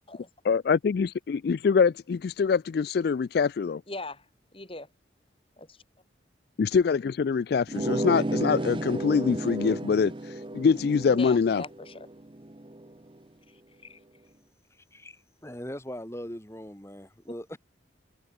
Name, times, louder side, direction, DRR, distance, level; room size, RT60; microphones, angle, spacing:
voice 1, 0.4-3.8 6.6-11.6, left 5 dB, 55° left, 0.3 m, -24 dB
voice 2, 3.9-4.3 4.5-4.9 5.6-5.8 11.1-12.1 13.5-14.0, left 2 dB, 30° left, 4.5 m, -40 dB
sound 1, 7.7-13.0, right 1 dB, 25° right, 0.7 m, -33 dB
voice 3, 14.7-17.6, equal, 15° left, 3.6 m, -40 dB
head